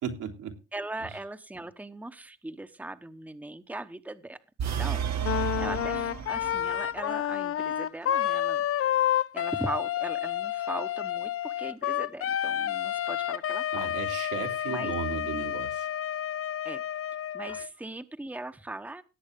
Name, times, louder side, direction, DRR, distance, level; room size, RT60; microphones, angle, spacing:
voice 1, 0.0-0.6 1.0-1.2 5.6-5.7 13.7-15.9 17.5-17.6, right 7 dB, 85° right, 1 dB, 3.0 m, -36 dB
voice 2, 0.7-8.6 9.3-13.9 14.7-14.9 16.6-16.8 17.3-19.0, right 2 dB, 5° right, 8 dB, 1.0 m, -39 dB
sound 1, 4.6-6.9, right 8 dB, 65° right, 1.7 m, -32 dB
Wind instrument woodwind instrument, 5.2-17.7, left 11 dB, 50° left, 0.5 m, -30 dB
18.0 x 8.0 x 3.6 m, 0.30 s
cardioid pair, 90°, 30 cm